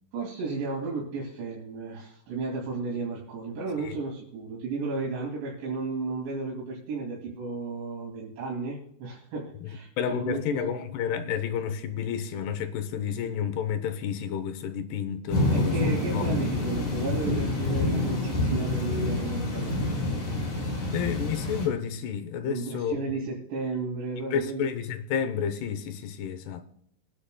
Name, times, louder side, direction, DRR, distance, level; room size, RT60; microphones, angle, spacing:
voice 1, 0.1-10.7 15.5-19.7 22.5-24.6, right 3 dB, 85° right, 4.7 m, -33 dB
voice 2, 9.6-16.4 20.9-22.9 24.3-26.6, left 8 dB, 75° left, 2.9 m, -31 dB
sound 1, 15.3-21.7, left 2 dB, 60° left, 6.2 m, -27 dB
22.5 x 10.0 x 2.2 m
omnidirectional pair, 5.0 m